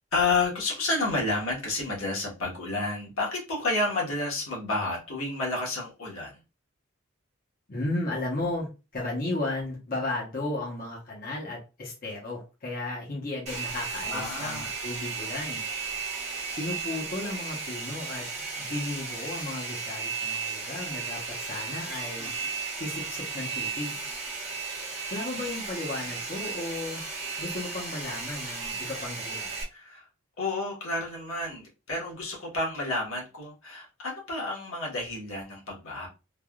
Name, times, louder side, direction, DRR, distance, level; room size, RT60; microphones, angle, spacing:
voice 1, 0.1-6.4 14.1-14.7 22.2-22.5 29.7-30.1 30.4-36.1, left 2 dB, 80° left, -3 dB, 1.2 m, -30 dB
voice 2, 7.7-8.7 8.9-15.6 16.6-18.3 18.6-22.3 22.8-24.0 25.1-27.0 27.4-29.5, left 2 dB, 40° left, -3 dB, 0.8 m, -34 dB
Domestic sounds home sounds, 13.5-29.6, right 4 dB, 30° right, 0.9 m, -35 dB
3.4 x 2.2 x 2.3 m, 0.29 s
head